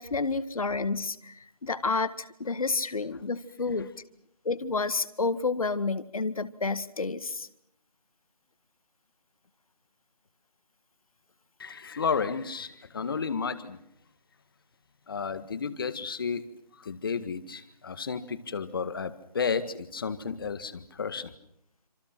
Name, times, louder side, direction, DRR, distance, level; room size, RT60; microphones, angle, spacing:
voice 1, 0.0-1.3 1.6-3.9 4.5-7.5, left 4 dB, 55° left, 13 dB, 1.9 m, -30 dB
voice 2, 11.6-13.8 15.1-16.4 16.8-21.3, left 5 dB, 35° left, 12 dB, 1.8 m, -32 dB
28.0 x 27.0 x 6.0 m, 0.76 s
figure-of-eight pair, 160°, 21 cm